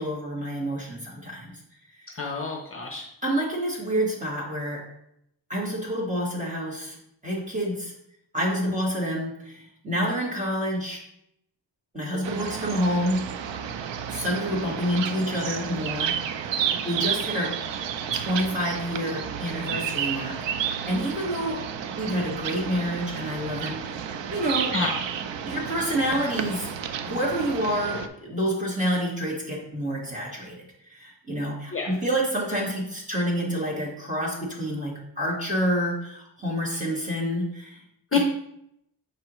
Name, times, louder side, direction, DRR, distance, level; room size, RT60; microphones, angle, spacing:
voice 1, 0.0-1.6 3.2-4.9 5.5-7.0 7.2-7.9 8.3-11.0 11.9-13.3 14.1-16.2 16.8-17.6 18.1-21.7 22.0-24.1 24.3-24.8 25.4-26.7 27.0-30.6 30.9-37.8 38.1-38.2, equal, 15° right, -4 dB, 1.6 m, -28 dB
voice 2, 2.2-3.0 24.7-24.9 31.7-31.9 38.1-38.2, left 5 dB, 30° left, 1 dB, 0.7 m, -27 dB
sound 1, 12.2-28.1, right 8 dB, 80° right, 0.6 m, -31 dB
6.8 x 4.6 x 3.0 m, 0.77 s
wide cardioid pair, 145°, 43 cm